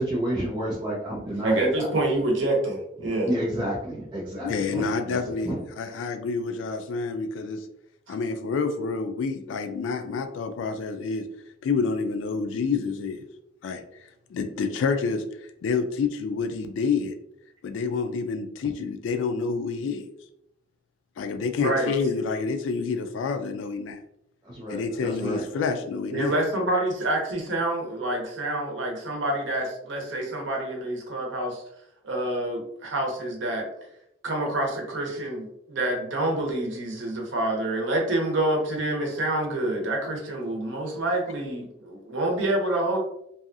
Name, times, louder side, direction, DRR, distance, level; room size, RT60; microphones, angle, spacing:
voice 1, 0.0-1.9 3.0-5.6 24.4-25.4, right 1 dB, 25° right, -6 dB, 0.5 m, -30 dB
voice 2, 1.4-3.3 8.1-8.2 21.6-21.9 26.1-31.6 32.0-33.7 34.2-43.0, right 1 dB, 85° right, 0 dB, 0.8 m, -27 dB
voice 3, 4.4-5.5 5.8-7.7 8.1-11.2 11.6-13.2 13.6-13.8 14.3-17.2 17.6-20.1 21.2-24.0 24.7-26.3, left 5 dB, 90° left, 7 dB, 0.3 m, -28 dB
2.7 x 2.3 x 2.5 m, 0.78 s
head